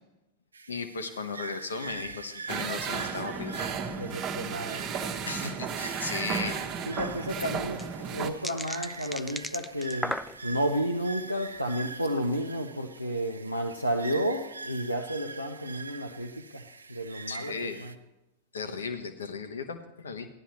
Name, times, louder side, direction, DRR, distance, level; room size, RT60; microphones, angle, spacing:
sound 1, 0.5-18.0, right 4 dB, 75° right, 0.5 m, -44 dB
voice 1, 0.7-3.6 5.2-6.6 17.3-17.8 18.5-20.3, left 4 dB, 70° left, 1.2 m, -36 dB
sound 2, 2.5-8.3, right 6 dB, 30° right, 1.1 m, -34 dB
voice 2, 4.0-4.9 6.8-18.0, equal, 90° left, 0.7 m, -32 dB
sound 3, 7.5-10.7 11.3-11.6, equal, ahead, 0.4 m, -36 dB
15.5 x 11.5 x 3.1 m
figure-of-eight pair, 90°, 0 cm